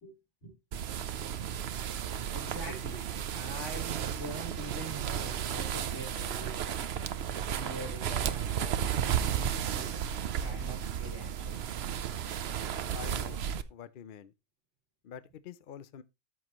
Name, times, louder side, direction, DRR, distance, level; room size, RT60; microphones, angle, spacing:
voice 1, 0.0-0.5 2.3-6.6 7.5-9.2 9.7-11.7, right 1 dB, 85° left, 4.2 m, -44 dB
sound 1, 0.7-13.6, right 9 dB, 65° right, 0.9 m, -33 dB
voice 2, 12.9-13.4 13.7-14.3 15.0-16.0, left 8 dB, 55° left, 0.7 m, -46 dB
13.5 x 6.3 x 3.0 m
omnidirectional pair, 1.2 m